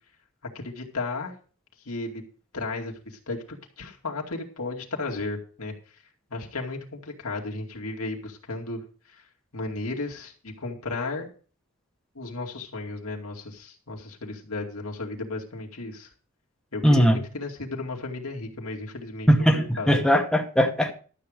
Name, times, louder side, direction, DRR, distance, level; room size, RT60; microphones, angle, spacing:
voice 1, 0.5-1.3 1.8-2.2 2.5-6.0 6.3-9.2 9.5-11.3 12.1-16.1 16.7-20.0, left 3 dB, 85° left, 0 dB, 2.3 m, -34 dB
voice 2, 16.8-17.2 19.3-20.9, equal, 5° left, 3 dB, 1.0 m, -19 dB
12.5 x 7.7 x 5.0 m, 0.41 s
head